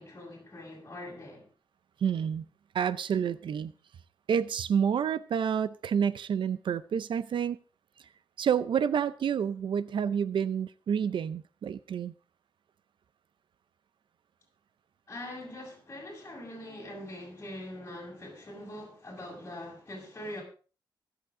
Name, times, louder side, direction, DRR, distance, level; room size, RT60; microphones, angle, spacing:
voice 1, 0.0-1.5 15.1-20.4, left 1 dB, 30° left, 7.0 m, -43 dB
voice 2, 2.0-2.5 2.7-3.7 4.3-7.6 8.4-12.1, right 8 dB, 70° right, 0.6 m, -29 dB
23.5 x 8.2 x 3.7 m
wide cardioid pair, 145°, 9 cm